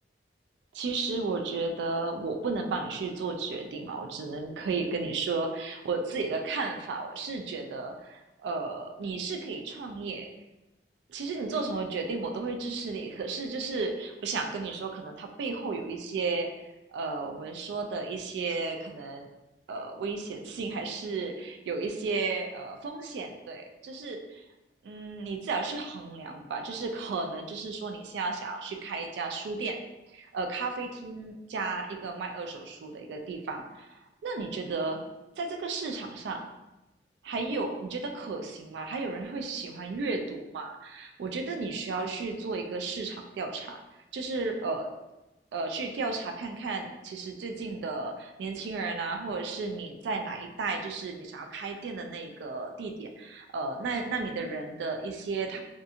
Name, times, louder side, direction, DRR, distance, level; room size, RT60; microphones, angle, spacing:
voice 1, 0.7-10.3 11.1-19.3 19.7-24.4 24.8-29.8 30.1-35.0 35.4-36.4 37.2-43.8 44.1-44.9 45.5-55.6, right 3 dB, 75° right, 4 dB, 0.3 m, -34 dB
2.7 x 2.4 x 2.4 m, 1.0 s
head